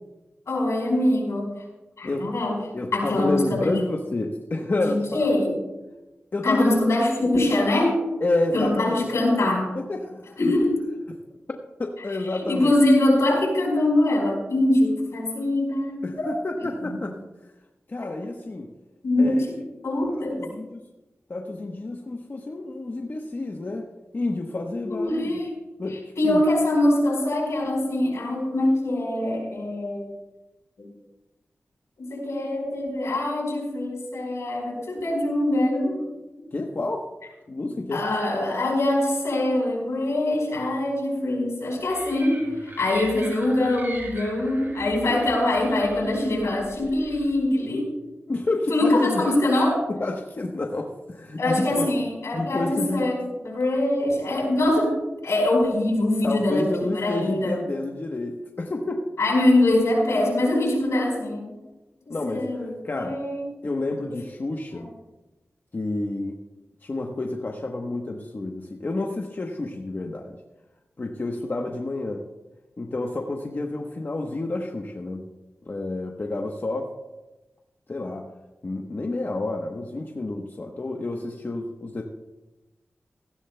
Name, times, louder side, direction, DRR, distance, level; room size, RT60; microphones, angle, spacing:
voice 1, 0.5-1.5 2.0-2.6 2.9-3.8 4.8-5.5 6.4-8.0 8.5-9.7 10.4-10.8 12.4-16.3 16.6-17.0 18.0-18.1 19.0-19.6 19.8-20.4 24.9-25.5 26.2-30.2 30.8-30.9 32.0-36.1 37.9-42.4 42.8-47.9 48.7-49.8 51.4-57.7 59.2-61.5 62.1-63.5 64.1-64.2 64.7-64.9, left 1 dB, 85° left, -2 dB, 4.6 m, -23 dB
voice 2, 2.7-5.3 6.3-6.8 8.2-9.1 9.7-10.5 11.8-12.8 16.0-17.2 17.9-18.7 19.2-19.4 20.3-20.9 21.3-23.9 24.1-25.3 25.8-26.0 26.3-26.4 36.5-37.1 37.5-38.0 48.3-49.4 49.9-51.9 52.3-53.0 56.2-59.1 62.1-63.2 63.6-64.9 65.7-66.4 66.8-70.3 71.0-72.3 72.8-75.3 75.7-76.9 77.9-78.3 78.6-82.0, left 2 dB, 45° left, 2 dB, 1.0 m, -29 dB
sound 1, 41.9-47.3, right 2 dB, 50° right, 3.5 m, -41 dB
17.0 x 15.0 x 2.2 m, 1.1 s
wide cardioid pair, 70°, 5 cm